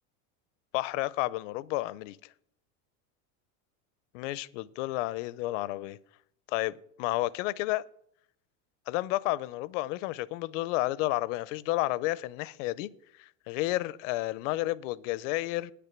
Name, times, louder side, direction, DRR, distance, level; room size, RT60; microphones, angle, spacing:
voice 1, 0.7-2.2 4.1-6.0 6.5-7.8 8.9-12.9 13.2-15.7, left 18 dB, 80° left, 0.6 m, -31 dB
9.6 x 6.9 x 8.7 m
supercardioid pair, 140°, 37 cm